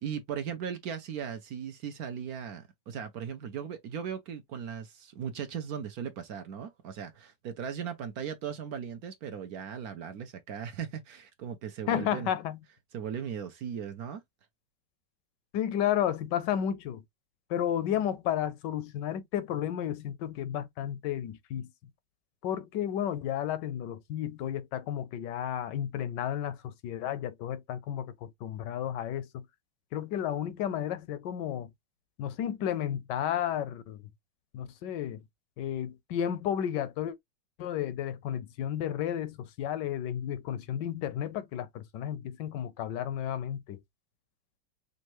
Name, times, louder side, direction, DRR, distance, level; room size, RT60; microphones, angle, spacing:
voice 1, 0.0-12.3 12.9-14.2, right 8 dB, 65° right, 1.0 m, -38 dB
voice 2, 11.9-12.6 15.5-17.0 17.5-21.7 22.4-29.4 29.9-31.7 32.2-34.0 34.5-35.2 35.6-37.2 37.6-43.8, left 10 dB, 75° left, 1.2 m, -32 dB
5.3 x 2.5 x 3.0 m
omnidirectional pair, 2.0 m